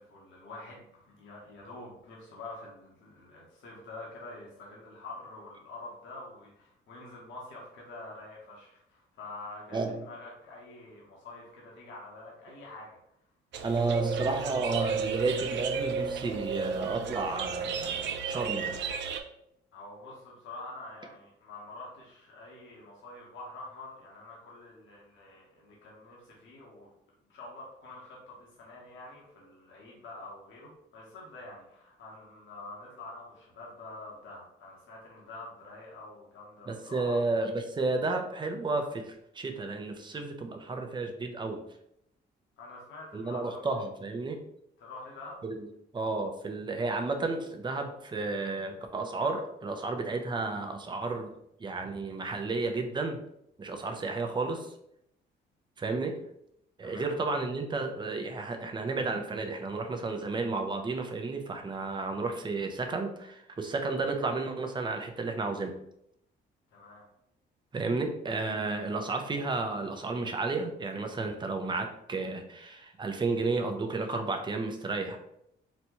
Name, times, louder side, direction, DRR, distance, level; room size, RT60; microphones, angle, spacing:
voice 1, 0.0-13.0 19.7-26.9 27.3-37.2 42.6-43.7 44.8-45.4 56.8-57.1 66.7-67.0, left 2 dB, 75° left, -3 dB, 1.0 m, -46 dB
sound 1, 13.5-19.2, right 5 dB, 65° right, 0.4 m, -33 dB
voice 2, 13.6-18.8 36.7-41.6 43.1-44.4 45.4-45.7 45.9-51.3 51.6-53.2 53.6-54.7 55.8-56.1 56.8-65.7 67.7-75.2, right 3 dB, 25° right, 5 dB, 0.5 m, -32 dB
4.1 x 2.2 x 2.9 m, 0.77 s
cardioid pair, 90°, 20 cm